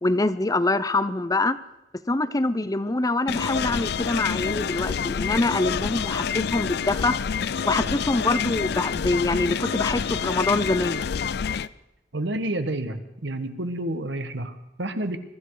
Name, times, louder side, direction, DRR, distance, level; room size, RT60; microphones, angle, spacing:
voice 1, 0.0-1.6 2.1-7.2 7.6-11.0, left 2 dB, 20° left, 13 dB, 0.6 m, -24 dB
sound 1, 3.3-11.7, left 6 dB, 65° left, 0.5 m, -27 dB
voice 2, 12.1-15.2, right 1 dB, 80° right, 9 dB, 1.4 m, -29 dB
22.0 x 13.5 x 4.8 m, 0.90 s
head